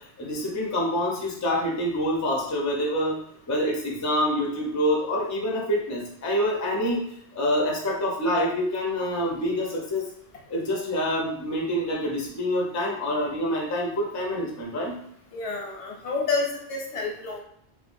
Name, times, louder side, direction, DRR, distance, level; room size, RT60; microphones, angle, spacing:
voice 1, 0.0-7.0 7.3-10.0 10.5-15.0, equal, 25° left, -2 dB, 0.4 m, -26 dB
voice 2, 15.3-17.4, left 4 dB, 85° left, -1 dB, 1.0 m, -29 dB
3.2 x 2.1 x 2.5 m, 0.73 s
omnidirectional pair, 1.1 m